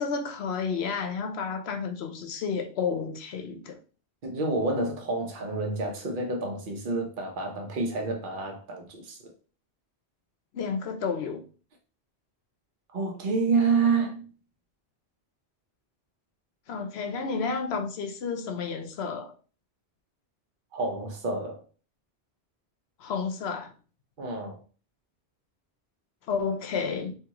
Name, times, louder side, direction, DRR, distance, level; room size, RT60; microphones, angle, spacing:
voice 1, 0.0-3.8 10.5-11.4 16.7-19.3 23.0-23.7 26.3-27.2, left 5 dB, 75° left, 0.9 m, -31 dB
voice 2, 4.2-9.3 12.9-14.3 20.7-21.6 24.2-24.6, right 4 dB, 50° right, 1.0 m, -28 dB
3.6 x 2.8 x 2.9 m
omnidirectional pair, 1.1 m